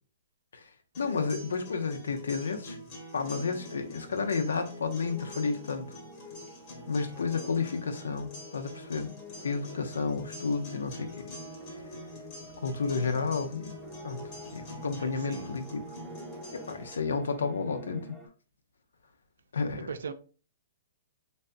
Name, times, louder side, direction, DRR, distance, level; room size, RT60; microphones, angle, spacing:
sound 1, 0.9-16.9, left 2 dB, 40° left, 1.3 m, -45 dB
voice 1, 1.0-2.8 3.1-6.0 6.9-9.1 9.4-11.3 12.6-13.8 14.0-14.2 14.5-15.8 16.5-18.2 19.5-19.9, left 4 dB, 85° left, 0.6 m, -31 dB
sound 2, 3.2-18.3, right 1 dB, 5° right, 0.5 m, -49 dB
voice 2, 15.0-15.5 19.7-20.1, right 6 dB, 80° right, 0.4 m, -39 dB
3.2 x 2.7 x 2.6 m
hypercardioid pair, 135°, 0 cm